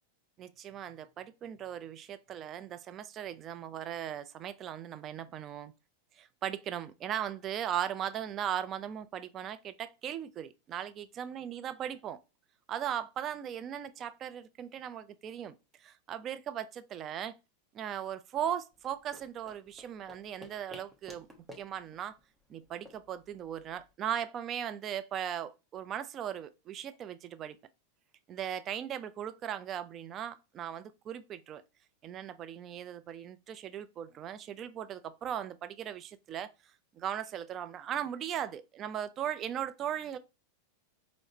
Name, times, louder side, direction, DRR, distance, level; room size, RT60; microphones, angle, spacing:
voice 1, 0.4-5.7 6.2-12.2 12.7-17.4 17.7-21.3 21.6-22.2 22.5-27.6 28.3-31.6 32.0-36.5 36.9-40.2, right 10 dB, 35° right, 0.4 m, -38 dB
sound 1, 18.7-23.9, equal, 15° right, 0.9 m, -54 dB
4.7 x 2.0 x 2.7 m
figure-of-eight pair, 95°, 0 cm